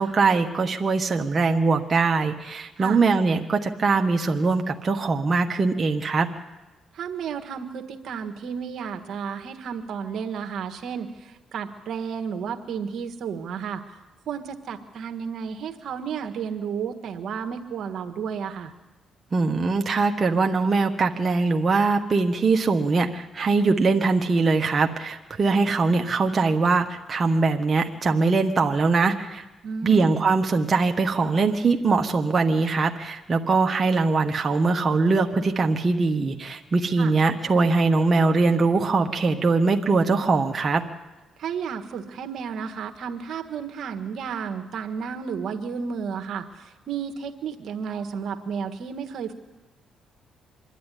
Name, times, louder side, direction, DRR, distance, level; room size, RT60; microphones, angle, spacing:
voice 1, 0.0-6.3 19.3-29.4 29.8-40.8, right 4 dB, 35° right, 3 dB, 1.3 m, -22 dB
voice 2, 6.9-13.8 14.3-18.7 29.6-30.1 37.0-37.1 41.4-49.3, right 6 dB, 65° right, 5 dB, 1.6 m, -32 dB
25.5 x 11.0 x 9.9 m, 1.1 s
cardioid pair, 90°, 0 cm